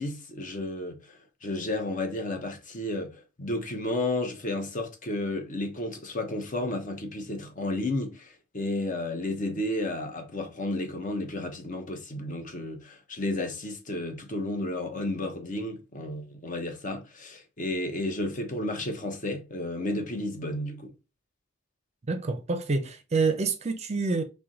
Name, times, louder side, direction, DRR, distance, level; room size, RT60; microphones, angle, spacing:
voice 1, 0.0-20.9, left 1 dB, 40° left, 0.9 m, -32 dB
voice 2, 22.1-24.2, right 4 dB, 35° right, 0.5 m, -27 dB
4.4 x 2.2 x 3.8 m
head